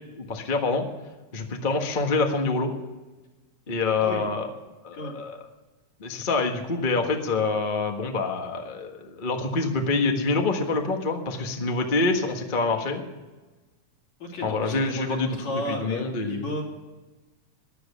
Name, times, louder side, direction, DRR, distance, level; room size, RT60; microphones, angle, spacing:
voice 1, 0.2-0.8 1.3-2.7 3.7-4.5 4.8-5.4 6.0-13.0 14.4-15.3 15.7-16.4, left 3 dB, 35° left, 3 dB, 0.7 m, -26 dB
voice 2, 14.2-16.6, left 1 dB, 65° left, -1 dB, 4.4 m, -33 dB
14.0 x 10.5 x 7.3 m, 1.2 s
omnidirectional pair, 3.5 m